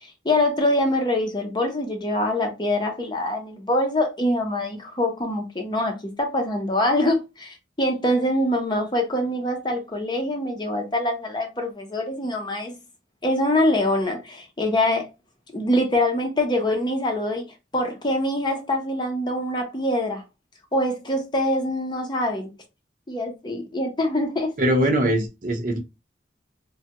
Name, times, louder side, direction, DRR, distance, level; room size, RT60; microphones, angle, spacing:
voice 1, 0.0-12.8 13.2-15.1 15.5-20.2 20.7-22.5 23.1-24.5, left 1 dB, 25° left, 0.6 m, -24 dB
voice 2, 24.6-25.8, right 1 dB, 50° right, 0.7 m, -21 dB
3.3 x 2.2 x 2.9 m
head